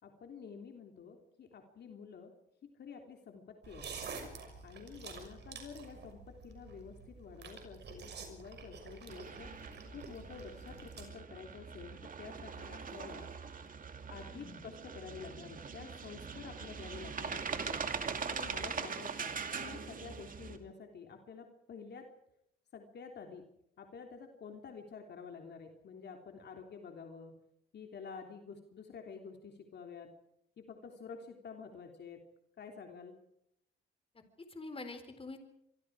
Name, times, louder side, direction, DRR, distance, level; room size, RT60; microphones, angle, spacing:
voice 1, 0.0-2.3 2.6-3.8 4.6-9.5 9.9-13.3 14.1-17.8 18.3-22.1 22.7-23.4 23.8-27.3 27.7-30.1 30.6-32.2 32.6-33.1, left 5 dB, 60° left, 3 dB, 3.4 m, -49 dB
sound 1, 3.6-11.0, right 4 dB, 60° right, 6.2 m, -48 dB
sound 2, 9.1-20.6, right 5 dB, 45° right, 2.7 m, -42 dB
voice 2, 14.3-14.6 34.1-35.4, left 3 dB, 30° left, 8 dB, 4.2 m, -46 dB
26.5 x 24.5 x 4.9 m, 0.75 s
cardioid pair, 90°, 20 cm